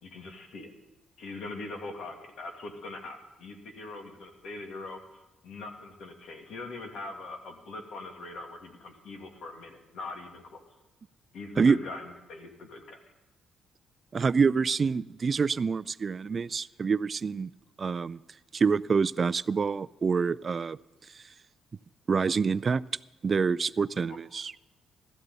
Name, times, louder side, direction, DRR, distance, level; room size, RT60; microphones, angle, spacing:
voice 1, 0.0-0.7 1.2-10.6 11.3-13.0 24.1-24.2, left 2 dB, 70° left, 4 dB, 2.0 m, -42 dB
voice 2, 14.1-17.5 17.8-18.2 18.5-20.8 22.1-22.8 23.2-24.5, right 5 dB, 40° right, 16 dB, 0.3 m, -26 dB
16.0 x 13.0 x 4.1 m, 1.0 s
cardioid pair, 90°, 0 cm